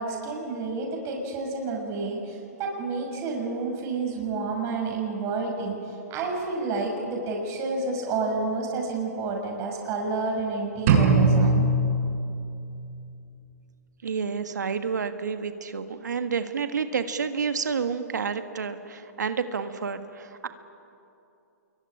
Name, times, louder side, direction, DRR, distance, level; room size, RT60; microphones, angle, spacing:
voice 1, 0.0-11.7, right 3 dB, 30° right, 0 dB, 6.2 m, -30 dB
sound 1, 10.9-12.8, right 3 dB, 50° right, 7.7 m, -21 dB
voice 2, 14.0-20.5, right 6 dB, 85° right, 8 dB, 1.7 m, -29 dB
26.5 x 23.0 x 9.9 m, 2.7 s
hypercardioid pair, 130°, 9 cm